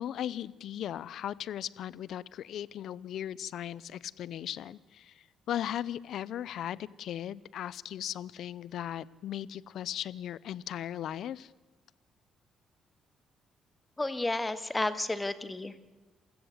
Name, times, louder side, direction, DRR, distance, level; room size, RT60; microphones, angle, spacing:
voice 1, 0.0-11.5, left 11 dB, 75° left, 20 dB, 0.6 m, -37 dB
voice 2, 14.0-15.9, left 2 dB, 15° left, 12 dB, 1.9 m, -32 dB
28.0 x 16.0 x 8.1 m, 1.3 s
cardioid pair, 90°, 0 cm